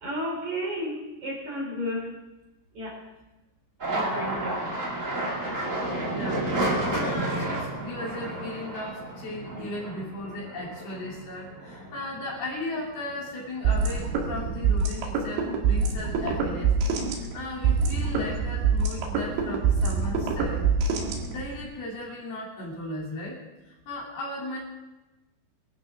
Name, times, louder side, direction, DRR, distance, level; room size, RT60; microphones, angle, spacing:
voice 1, 0.0-2.1 2.7-3.0 3.9-4.6, equal, 45° right, -2 dB, 4.5 m, -32 dB
sound 1, 3.8-12.5 12.9-13.7 14.0-14.9, right 1 dB, 25° right, 1.7 m, -31 dB
voice 2, 3.9-4.5 5.8-16.7 17.3-20.7 21.2-24.6, left 1 dB, 60° left, -4 dB, 5.0 m, -36 dB
sound 2, 13.7-21.6, right 5 dB, 90° right, 4.3 m, -25 dB
23.0 x 13.0 x 3.6 m, 1.1 s
omnidirectional pair, 5.1 m